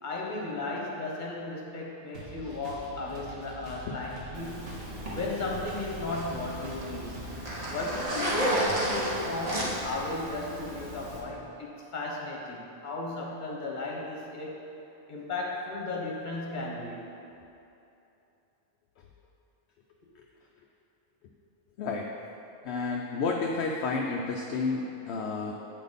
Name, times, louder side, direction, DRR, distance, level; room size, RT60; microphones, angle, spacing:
voice 1, 0.0-4.7 5.1-7.3 7.7-14.6 15.1-17.0, left 2 dB, 40° left, -3 dB, 1.2 m, -35 dB
sound 1, 2.1-7.5, right 1 dB, 75° right, 1.6 m, -44 dB
Zipper (clothing), 4.3-11.2, equal, 30° right, 1.1 m, -33 dB
voice 2, 21.8-22.1 22.6-25.5, left 4 dB, 65° left, 0 dB, 0.7 m, -30 dB
8.4 x 4.1 x 5.2 m, 2.8 s
omnidirectional pair, 1.4 m